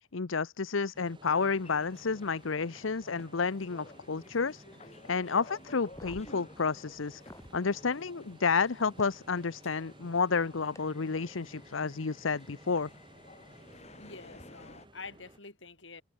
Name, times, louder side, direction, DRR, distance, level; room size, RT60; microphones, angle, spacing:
voice 1, 0.1-4.6 5.1-7.2 7.5-12.9, left 5 dB, 90° left, 0.8 m, -30 dB
sound 1, 0.9-15.4, right 1 dB, 25° right, 2.9 m, -56 dB
sound 2, 1.2-14.9, left 2 dB, 35° left, 4.4 m, -55 dB
sound 3, 5.8-7.6 9.0-9.1 10.7-10.8 12.8-12.9 14.3-14.4, left 1 dB, 15° left, 5.3 m, -51 dB
voice 2, 13.7-16.0, left 4 dB, 70° left, 6.9 m, -48 dB
open air
head